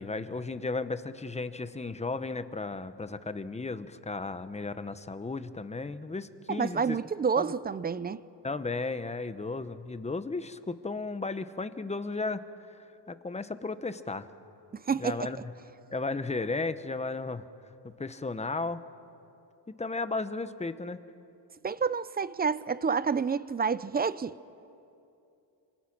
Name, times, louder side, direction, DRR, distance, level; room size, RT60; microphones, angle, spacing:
voice 1, 0.0-7.0 7.4-7.5 8.4-14.3 15.0-15.4 15.9-17.5 17.8-18.8 19.7-21.0, left 3 dB, 15° left, 0.9 m, -34 dB
voice 2, 6.5-8.2 14.7-15.3 21.6-24.4, right 5 dB, 20° right, 0.5 m, -29 dB
26.5 x 26.5 x 6.0 m
cardioid pair, 115°, 43 cm